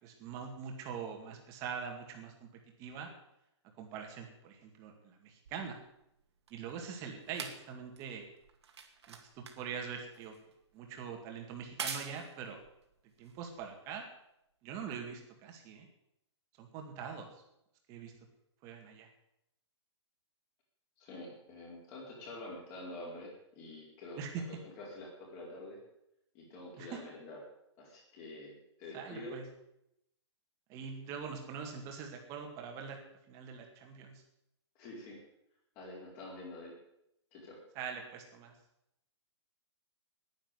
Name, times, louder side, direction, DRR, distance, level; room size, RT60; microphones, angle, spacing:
voice 1, 0.0-2.5 2.8-3.1 3.8-5.8 6.5-8.2 9.1-10.3 10.7-12.6 13.2-14.1 14.6-15.9 16.6-17.3 17.9-18.1 18.6-19.1 24.2-24.3 26.8-27.0 28.9-29.4 30.7-33.0 33.3-34.2 37.7-38.5, right 6 dB, 20° right, 3 dB, 2.2 m, -43 dB
sound 1, 5.4-14.1 14.9-15.0, right 6 dB, 65° right, 2.3 m, -47 dB
voice 2, 21.0-25.8 26.3-27.4 27.8-28.5 28.8-29.4 34.8-35.2 35.8-36.7 37.3-37.6, left 2 dB, 25° left, -2 dB, 4.5 m, -47 dB
10.5 x 10.0 x 9.7 m, 0.81 s
hypercardioid pair, 170°, 15 cm